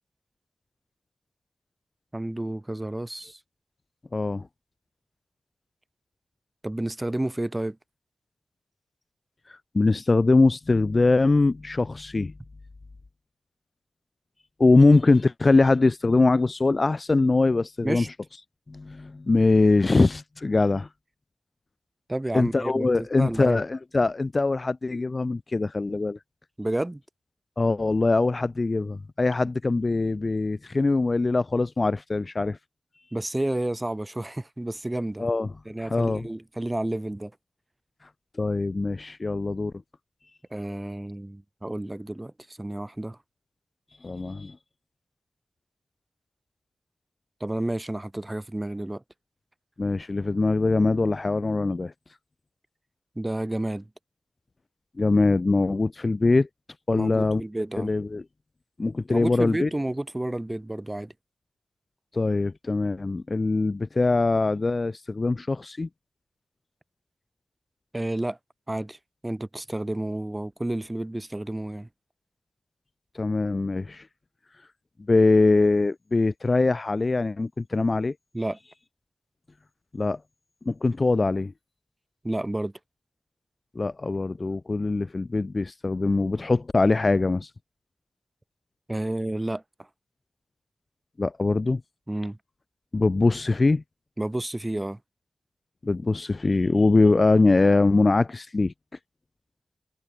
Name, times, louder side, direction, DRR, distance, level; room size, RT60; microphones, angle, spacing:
voice 1, 2.1-3.4 6.6-7.8 17.8-18.1 22.1-23.6 26.6-27.0 33.1-35.3 35.6-37.3 40.5-43.2 47.4-49.0 53.2-53.9 56.9-57.9 59.1-61.1 67.9-68.4 68.7-69.0 69.2-71.9 78.3-78.6 82.2-82.7 88.9-89.9 92.1-92.4 94.2-95.0, right 1 dB, 15° right, 5.9 m, -30 dB
voice 2, 4.1-4.4 9.7-12.3 14.6-18.0 18.7-20.9 22.3-26.2 27.6-32.6 35.2-35.5 35.9-36.2 38.4-39.7 44.0-44.5 49.8-51.9 55.0-56.5 56.9-57.4 57.8-58.2 58.8-59.7 62.1-65.9 73.1-74.0 75.1-78.1 79.9-80.2 80.7-81.5 83.8-87.5 91.2-91.8 92.9-93.8 95.8-98.7, left 3 dB, 35° left, 2.5 m, -22 dB
wide cardioid pair, 115°, 0 cm